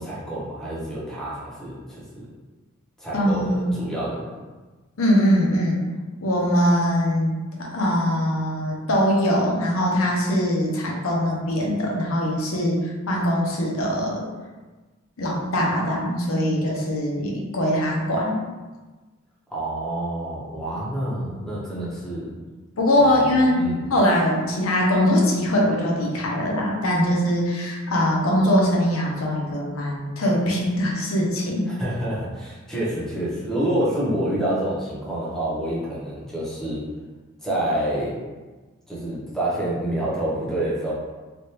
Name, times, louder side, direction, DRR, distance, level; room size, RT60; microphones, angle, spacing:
voice 1, 0.0-2.3 3.0-4.3 19.5-22.4 23.0-23.9 31.7-36.8 37.4-38.2 38.9-40.9, right 1 dB, ahead, -7 dB, 0.8 m, -28 dB
voice 2, 3.1-3.7 5.0-5.8 6.2-14.3 15.2-18.4 22.8-23.6 23.9-31.7, equal, 70° left, -2 dB, 0.7 m, -22 dB
3.3 x 2.5 x 2.8 m, 1.3 s
head